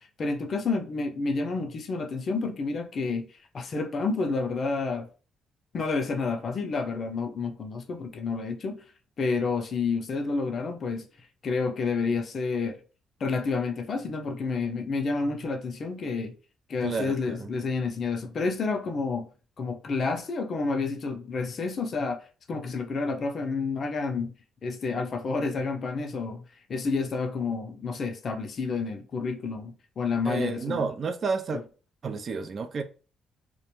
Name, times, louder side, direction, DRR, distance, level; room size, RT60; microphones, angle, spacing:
voice 1, 0.2-3.3 3.5-5.1 5.7-8.8 9.2-11.1 11.4-12.8 13.2-16.3 16.7-19.3 19.6-24.3 24.6-26.4 26.7-30.9 31.5-31.6, left 4 dB, 50° left, 0.5 m, -29 dB
voice 2, 16.8-17.5 30.2-31.6 32.0-32.8, right 5 dB, 50° right, 0.3 m, -30 dB
2.3 x 2.1 x 2.9 m
cardioid pair, 90°, 0 cm